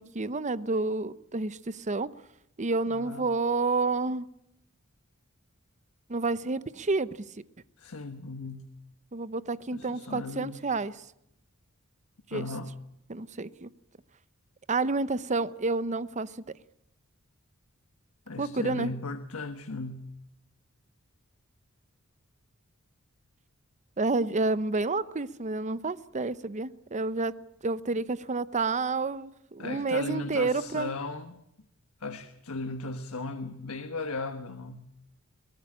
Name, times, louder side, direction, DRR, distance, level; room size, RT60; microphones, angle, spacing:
voice 1, 0.0-2.1 2.6-4.3 6.1-7.3 9.1-10.9 12.3-12.5 13.1-13.7 14.7-16.3 18.4-18.9 24.0-27.3 27.6-30.9, right 3 dB, 35° right, 16 dB, 0.8 m, -29 dB
voice 2, 2.8-3.3 7.8-8.7 9.7-10.6 12.3-12.7 18.3-20.1 29.6-31.4 32.0-34.9, left 3 dB, 90° left, 8 dB, 1.3 m, -37 dB
22.5 x 18.0 x 8.7 m, 0.77 s
head